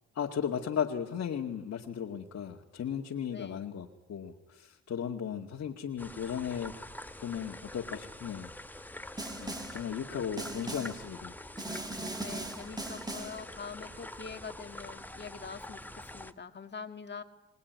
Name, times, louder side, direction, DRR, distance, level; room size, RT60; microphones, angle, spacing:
voice 1, 0.2-6.8 7.2-8.5 9.4-11.3, left 8 dB, 55° left, -1 dB, 2.1 m, -36 dB
voice 2, 3.3-3.6 12.2-17.2, left 5 dB, 35° left, 6 dB, 2.0 m, -44 dB
sound 1, 6.0-16.3, left 1 dB, 5° left, 1.2 m, -46 dB
Snare drum, 9.2-9.9 10.4-11.1 11.6-13.5, right 2 dB, 15° right, 1.9 m, -39 dB
26.0 x 20.0 x 9.5 m, 1.0 s
cardioid pair, 90°, 30 cm